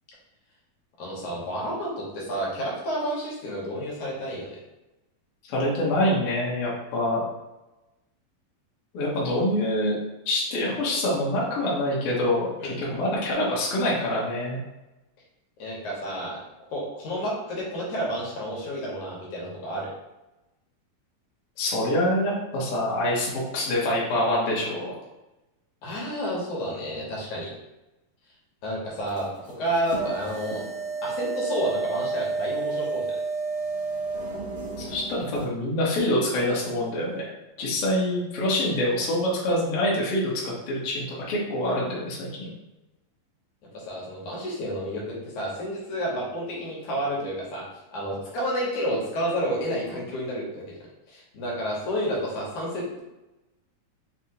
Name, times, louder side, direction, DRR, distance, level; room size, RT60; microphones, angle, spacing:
voice 1, 1.0-4.6 12.6-12.8 15.6-16.4 16.7-19.9 25.8-27.5 28.6-29.3 29.6-30.6 31.0-33.2 43.7-47.6 47.9-50.6 51.1-53.0, equal, 70° left, -4 dB, 2.0 m, -30 dB
voice 2, 5.5-7.2 8.9-10.0 10.2-14.6 21.6-24.9 34.8-37.3 37.6-42.5, left 1 dB, 85° left, -6 dB, 1.2 m, -25 dB
sound 1, 29.1-35.5, right 4 dB, 70° right, 1.1 m, -31 dB
5.7 x 2.8 x 2.8 m, 0.99 s
omnidirectional pair, 4.3 m